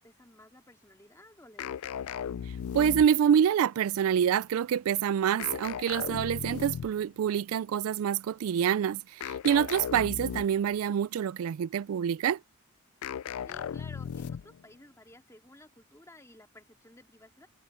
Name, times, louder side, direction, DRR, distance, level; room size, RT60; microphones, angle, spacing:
voice 1, 0.0-1.8 13.4-17.5, left 1 dB, 15° left, 2.4 m, -54 dB
sound 1, 1.6-3.4 5.4-7.1 9.2-10.7 13.0-14.6, left 8 dB, 75° left, 0.3 m, -37 dB
voice 2, 2.7-12.4, right 8 dB, 75° right, 0.3 m, -26 dB
head